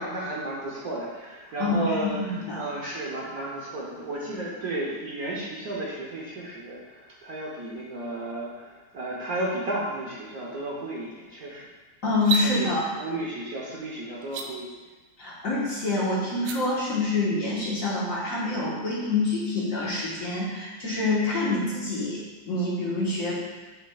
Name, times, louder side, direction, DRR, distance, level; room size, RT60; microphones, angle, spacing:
voice 1, 0.0-2.2 2.5-11.7 12.4-12.7 13.0-14.7, right 1 dB, 55° right, -4 dB, 1.2 m, -33 dB
voice 2, 1.6-2.6 12.0-12.9 15.2-23.4, left 2 dB, 45° left, -7 dB, 1.6 m, -26 dB
sound 1, 12.1-12.5 14.2-14.5 16.3-16.6, right 5 dB, 85° right, 1.5 m, -28 dB
8.8 x 5.9 x 2.4 m, 1.2 s
omnidirectional pair, 2.2 m